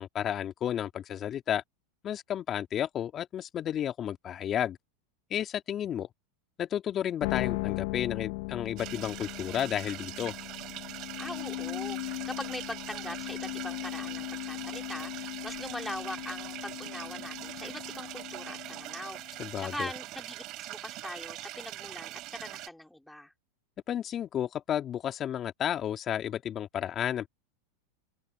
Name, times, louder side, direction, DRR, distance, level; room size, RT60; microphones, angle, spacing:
voice 1, 0.0-1.6 2.0-4.8 5.3-6.1 6.6-10.3 19.4-19.9 23.9-27.3, left 10 dB, 35° left, 2.4 m, -32 dB
sound 1, 7.2-19.5, left 25 dB, 60° left, 0.8 m, -38 dB
sound 2, 8.8-22.7, right 17 dB, 45° right, 4.6 m, -42 dB
voice 2, 11.2-19.2 19.6-23.3, left 1 dB, 5° left, 3.6 m, -41 dB
open air
hypercardioid pair, 105°, 0 cm